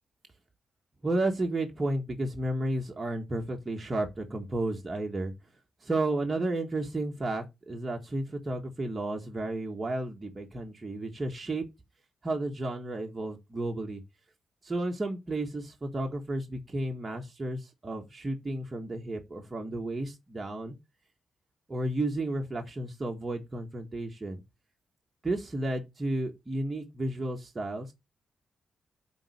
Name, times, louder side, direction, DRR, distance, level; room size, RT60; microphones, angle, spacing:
voice 1, 1.0-5.3 5.8-11.6 12.2-14.0 14.6-20.7 21.7-24.4 25.2-27.9, right 2 dB, 25° right, 1.6 m, -32 dB
8.9 x 4.1 x 5.0 m
cardioid pair, 100°, 0 cm